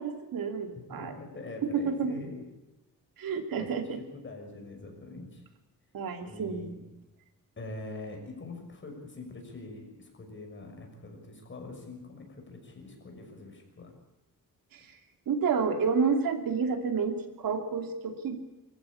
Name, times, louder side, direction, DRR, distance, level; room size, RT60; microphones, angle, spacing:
voice 1, 0.0-1.1 1.7-2.1 3.2-4.0 5.9-6.7 14.7-15.0 15.3-18.4, right 5 dB, 90° right, 6 dB, 2.6 m, -30 dB
voice 2, 0.7-2.4 3.6-3.7 4.0-5.5 6.2-6.8 7.6-13.9, left 2 dB, 35° left, 2 dB, 6.2 m, -44 dB
25.0 x 14.5 x 8.6 m, 0.98 s
wide cardioid pair, 125°, 33 cm